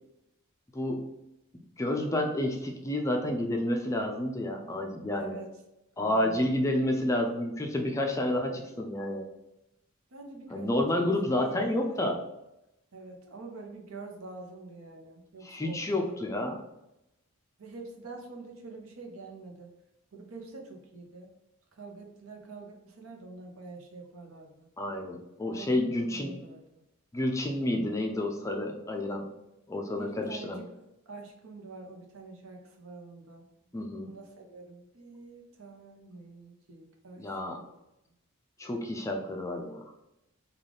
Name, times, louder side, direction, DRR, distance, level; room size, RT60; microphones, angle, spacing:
voice 1, 0.7-1.1 1.8-5.4 6.0-9.2 10.5-12.2 15.4-16.6 24.8-26.4 27.1-29.3 29.7-30.6 33.7-34.1 37.2-37.6 38.6-39.8, left 1 dB, 15° left, 2 dB, 0.3 m, -30 dB
voice 2, 5.1-5.5 6.0-6.5 10.1-10.9 11.3-12.1 12.9-16.3 17.6-19.7 20.1-21.3 21.7-24.7 25.5-26.8 28.9-29.2 30.0-30.8 31.1-33.5 34.0-37.6, right 3 dB, 80° right, 2 dB, 0.7 m, -46 dB
3.4 x 2.3 x 3.7 m, 0.90 s
head